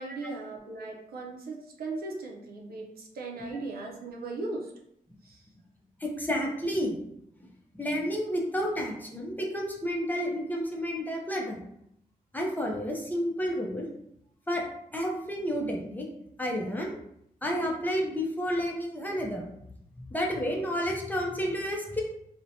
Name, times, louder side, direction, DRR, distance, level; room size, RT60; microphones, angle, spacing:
voice 1, 0.0-4.7 5.2-5.4, right 3 dB, 85° right, 0 dB, 0.5 m, -38 dB
voice 2, 6.0-6.9 7.7-11.6 12.3-13.9 14.5-14.6 14.9-16.1 16.4-16.9 17.4-19.4 20.1-22.0, equal, 10° left, -1 dB, 0.5 m, -30 dB
2.7 x 2.1 x 2.6 m, 0.75 s
wide cardioid pair, 95°, 15 cm